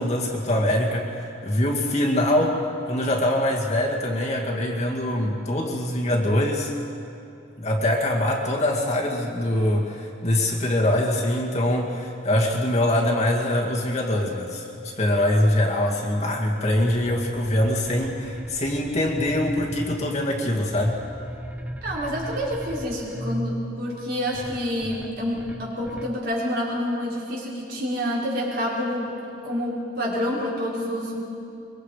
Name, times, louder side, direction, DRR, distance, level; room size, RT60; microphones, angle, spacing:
voice 1, 0.0-2.6 2.9-6.7 7.6-21.0, left 1 dB, 30° left, -2 dB, 2.2 m, -23 dB
sound 1, 16.7-26.2, equal, 5° right, 0.7 m, -37 dB
voice 2, 21.8-29.1 29.4-31.2, equal, 50° right, -6 dB, 5.5 m, -28 dB
24.0 x 24.0 x 5.1 m, 2.6 s
head